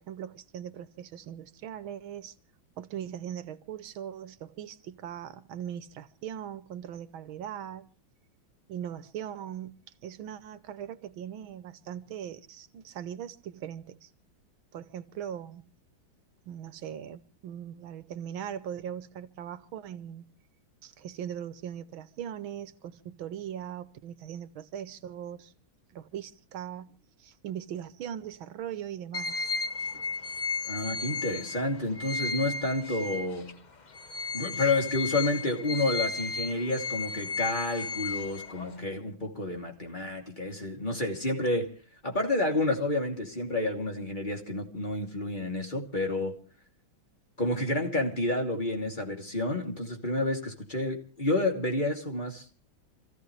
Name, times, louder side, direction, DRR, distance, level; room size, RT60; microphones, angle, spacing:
voice 1, 0.0-2.3 2.8-7.9 8.7-14.1 14.7-15.6 16.5-20.2 20.8-25.5 25.9-29.5 29.8-30.1, right 9 dB, 85° right, 1.8 m, -40 dB
sound 1, 29.1-33.5 33.9-38.8, left 4 dB, 40° left, 0.6 m, -34 dB
voice 2, 30.7-33.5 34.3-41.7 42.0-46.4 47.4-52.6, left 2 dB, 25° left, 2.9 m, -30 dB
28.0 x 15.0 x 3.2 m
omnidirectional pair, 2.1 m